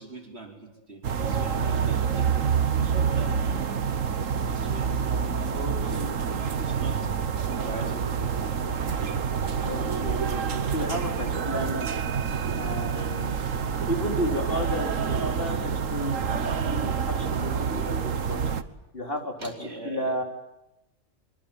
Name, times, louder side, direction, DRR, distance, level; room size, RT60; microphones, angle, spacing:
voice 1, 0.0-3.7 4.5-7.1 7.4-8.3 19.4-20.2, right 2 dB, 50° right, 2 dB, 4.8 m, -42 dB
sound 1, 1.0-18.6, right 6 dB, 75° right, 1.6 m, -27 dB
voice 2, 5.5-6.2 9.6-12.0 12.6-13.4 13.9-18.4 18.9-19.5 19.8-20.2, equal, 45° left, 3 dB, 3.9 m, -33 dB
24.5 x 23.5 x 9.0 m, 0.91 s
omnidirectional pair, 1.3 m